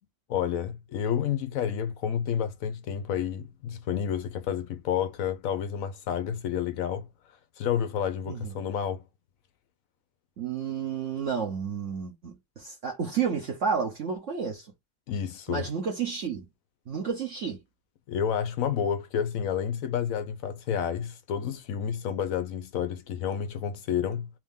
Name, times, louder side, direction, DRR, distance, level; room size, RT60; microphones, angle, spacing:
voice 1, 0.3-7.1 7.6-9.0 15.1-15.6 18.1-24.3, left 8 dB, 70° left, 0.8 m, -30 dB
voice 2, 10.4-14.7 15.5-16.4 16.9-17.6, right 6 dB, 55° right, 1.0 m, -31 dB
3.6 x 2.7 x 3.6 m
omnidirectional pair, 1.9 m